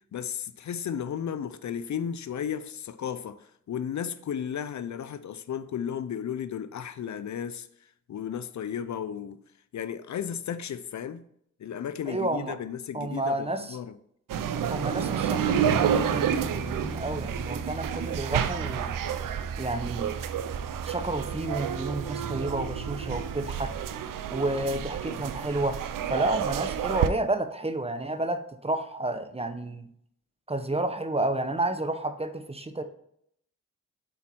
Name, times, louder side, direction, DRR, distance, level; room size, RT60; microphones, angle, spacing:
voice 1, 0.1-7.7 8.1-9.4 9.7-11.2 11.6-14.0, left 8 dB, 60° left, 0.5 m, -34 dB
voice 2, 12.1-12.5 12.9-13.8 14.7-19.0 19.6-20.2 20.9-23.7 24.3-25.8 26.1-29.9 30.5-32.8, right 2 dB, 20° right, 0.9 m, -30 dB
sound 1, 14.3-27.1, right 8 dB, 90° right, 0.5 m, -30 dB
Piano, 15.7-23.8, right 3 dB, 10° left, 3.0 m, -40 dB
8.2 x 4.3 x 4.5 m
cardioid pair, 55°, 32 cm